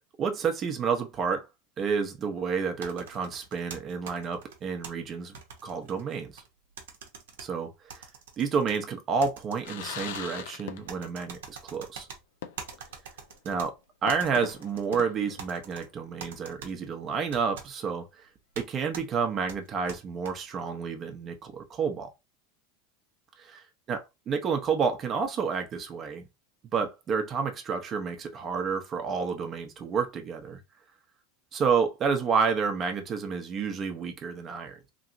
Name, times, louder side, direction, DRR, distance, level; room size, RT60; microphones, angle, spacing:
voice 1, 0.2-1.5 1.8-5.4 5.6-6.4 7.4-8.0 8.4-12.1 13.5-13.7 14.0-18.1 18.6-22.1 23.4-26.2 26.7-30.6 31.5-34.9, right 5 dB, 35° right, 0.7 m, -30 dB
sound 1, 2.8-4.9 5.3-6.5 6.8-7.5 7.9-8.8 9.2-10.2 10.9-12.2 12.6-13.7 14.1-15.0 15.4-15.8 16.2-16.7 17.3-17.7 18.5-18.7 18.9-19.0 19.5-20.3, right 6 dB, 75° right, 0.8 m, -43 dB
sound 2, 9.6-11.2 11.5-11.6 12.4-12.9 13.3-13.4 14.1-16.1, left 9 dB, 70° left, 0.5 m, -41 dB
3.0 x 2.7 x 2.6 m
hypercardioid pair, 90°, 0 cm